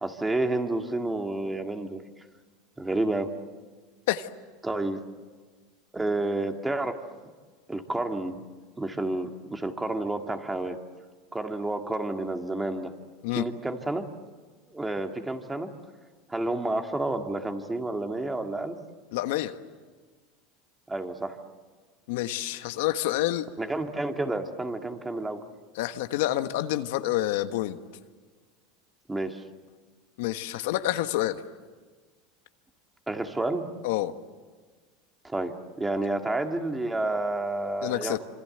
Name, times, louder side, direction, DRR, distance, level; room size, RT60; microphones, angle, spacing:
voice 1, 0.0-2.0 2.8-3.3 4.6-5.0 5.9-7.0 7.7-8.4 8.8-10.8 11.3-12.9 13.4-14.1 14.7-15.7 16.3-18.8 20.9-21.4 23.6-25.4 29.1-29.4 33.1-33.7 35.2-38.2, right 2 dB, 10° right, 5 dB, 2.2 m, -30 dB
voice 2, 19.1-19.5 22.1-23.5 25.7-27.8 30.2-31.4 33.8-34.1 37.8-38.2, left 15 dB, 75° left, 9 dB, 1.3 m, -28 dB
26.5 x 26.5 x 8.0 m, 1.5 s
supercardioid pair, 125°, 0 cm